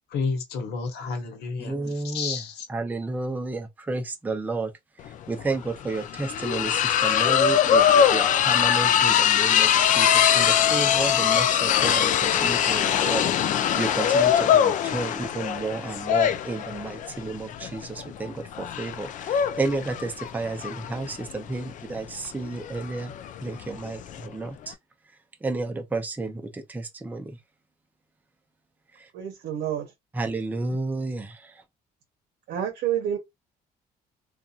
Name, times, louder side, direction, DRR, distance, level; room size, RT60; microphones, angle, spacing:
voice 1, 0.1-2.7, left 4 dB, 75° left, 1.0 m, -31 dB
voice 2, 1.6-2.4 2.7-4.7 5.3-23.1 23.4-24.7 25.4-27.2 30.1-31.3, right 3 dB, 10° right, 0.5 m, -31 dB
sound 1, 5.1-5.2 5.4-24.3, left 9 dB, 50° left, 0.4 m, -22 dB
voice 3, 29.1-29.9 32.5-33.2, right 10 dB, 80° right, 0.7 m, -28 dB
2.7 x 2.3 x 2.4 m
cardioid pair, 110°, 17 cm